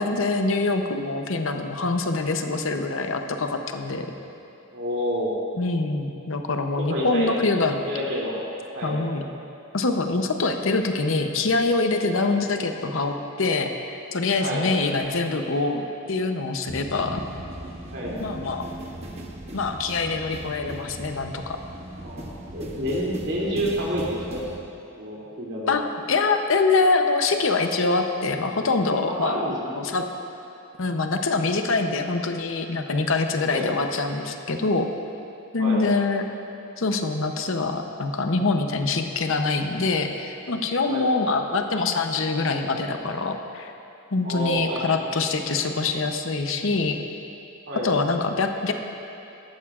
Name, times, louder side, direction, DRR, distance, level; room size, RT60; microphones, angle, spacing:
voice 1, 0.0-4.1 5.6-7.8 8.8-9.2 9.7-17.2 18.2-18.7 19.5-21.6 25.7-25.8 26.1-29.4 29.8-30.1 30.8-34.9 35.5-36.2 36.8-43.7 44.1-47.0 47.8-48.7, left 3 dB, 60° left, 5 dB, 0.7 m, -24 dB
voice 2, 4.7-5.3 6.8-7.3 7.9-8.4 8.7-9.0 12.2-12.3 14.4-14.7 17.9-18.1 22.0-24.4 24.9-25.8 29.0-29.7 33.5-33.7 35.6-35.8 40.9-41.1 44.2-45.1 47.7-47.9, equal, 50° right, -5 dB, 2.7 m, -29 dB
sound 1, 16.7-24.6, right 1 dB, 30° right, 1.0 m, -38 dB
18.0 x 13.5 x 2.4 m, 2.8 s
head